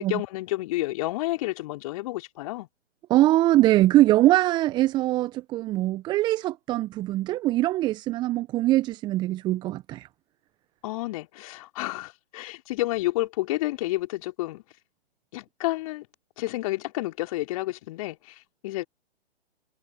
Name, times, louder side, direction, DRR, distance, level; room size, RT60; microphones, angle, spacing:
voice 1, 0.0-2.7 10.8-14.6 15.3-16.1 16.4-18.8, left 18 dB, 30° left, 4.6 m, -30 dB
voice 2, 3.1-10.1, right 15 dB, 15° right, 1.0 m, -22 dB
figure-of-eight pair, 130°, 33 cm